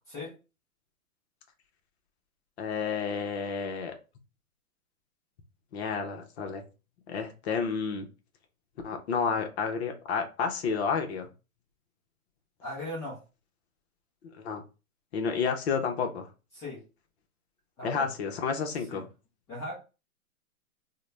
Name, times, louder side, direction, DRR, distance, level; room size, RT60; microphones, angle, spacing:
voice 1, 2.6-3.9 5.7-6.6 7.1-8.1 8.8-11.3 14.4-14.6 15.1-16.3 17.8-19.1, left 5 dB, 50° left, 4 dB, 0.8 m, -30 dB
voice 2, 12.6-13.2 16.5-16.8 17.8-18.1 18.9-19.0 19.5-19.8, left 1 dB, 5° left, -7 dB, 0.4 m, -38 dB
3.8 x 2.2 x 3.3 m, 0.31 s
hypercardioid pair, 140°, 43 cm